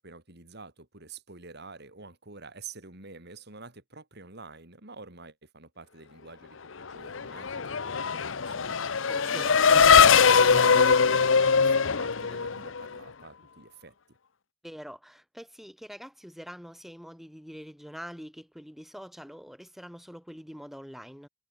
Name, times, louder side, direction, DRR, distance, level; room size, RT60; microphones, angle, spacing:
voice 1, 0.0-9.3 9.7-13.9, right 4 dB, 60° right, 5.7 m, -48 dB
Race car auto racing / Accelerating revving vroom, 6.9-13.0, left 6 dB, 75° left, 0.9 m, -21 dB
voice 2, 9.1-9.9 14.6-21.3, equal, ahead, 4.7 m, -44 dB
head